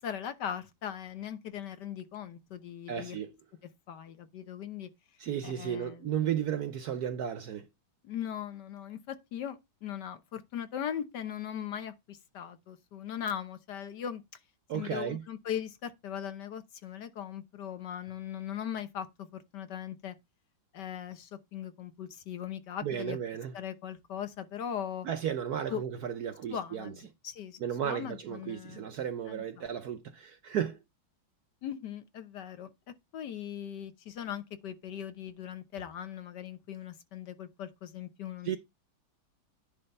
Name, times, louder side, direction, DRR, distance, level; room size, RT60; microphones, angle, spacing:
voice 1, 0.0-3.2 3.9-4.9 5.4-6.1 8.0-14.2 14.7-20.2 20.7-23.2 23.5-25.1 25.7-25.8 26.5-28.9 29.3-29.7 31.6-38.6, left 9 dB, 60° left, 1.4 m, -39 dB
voice 2, 2.9-3.3 5.2-7.7 14.7-15.2 22.8-23.5 25.0-26.9 27.6-30.8 38.4-38.6, right 9 dB, 65° right, 1.0 m, -34 dB
10.0 x 3.4 x 5.3 m
omnidirectional pair, 2.2 m